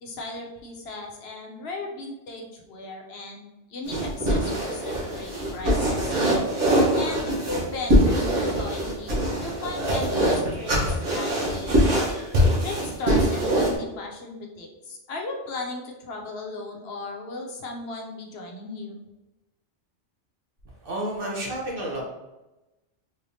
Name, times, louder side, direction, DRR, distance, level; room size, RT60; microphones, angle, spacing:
voice 1, 0.0-6.1 6.9-11.8 12.6-19.0, left 2 dB, 65° left, 1 dB, 0.8 m, -37 dB
sound 1, 3.9-13.8, equal, 90° right, 1.4 m, -23 dB
voice 2, 20.8-22.0, right 1 dB, 50° right, -3 dB, 1.1 m, -30 dB
4.0 x 3.2 x 2.6 m, 1.0 s
omnidirectional pair, 1.2 m